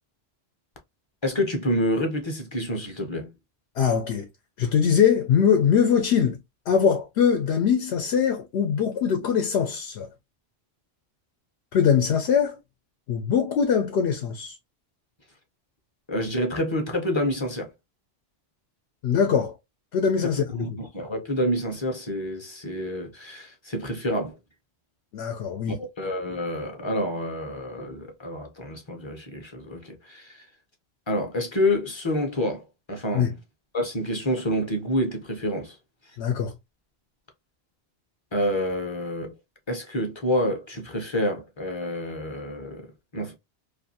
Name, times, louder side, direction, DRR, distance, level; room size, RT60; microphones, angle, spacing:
voice 1, 1.2-3.3 16.1-17.7 20.4-24.4 25.8-30.5 31.1-33.3 33.7-35.8 38.3-39.3 39.7-43.4, left 1 dB, 35° left, 0.5 m, -28 dB
voice 2, 3.7-4.3 4.6-6.4 6.7-10.1 11.7-12.6 13.1-14.6 19.0-19.6 19.9-20.8 25.1-25.8 33.1-33.3 36.2-36.5, left 7 dB, 90° left, 0.8 m, -22 dB
2.5 x 2.4 x 2.6 m
omnidirectional pair, 1.1 m